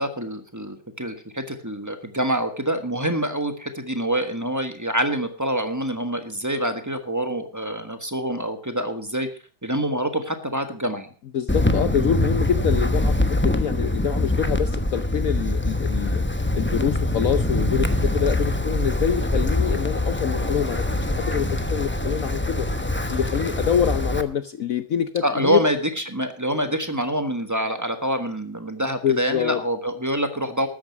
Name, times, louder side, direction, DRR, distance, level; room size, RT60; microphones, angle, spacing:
voice 1, 0.0-9.3 9.6-11.1 25.2-30.7, right 1 dB, 10° right, 8 dB, 1.1 m, -26 dB
voice 2, 11.3-13.2 13.4-16.2 16.5-20.8 21.2-22.7 23.1-25.6 29.0-29.6, left 8 dB, 65° left, 12 dB, 0.9 m, -25 dB
Wind, 11.5-24.2, left 1 dB, 10° left, 0.5 m, -23 dB
13.0 x 9.4 x 5.8 m, 0.42 s
omnidirectional pair, 2.1 m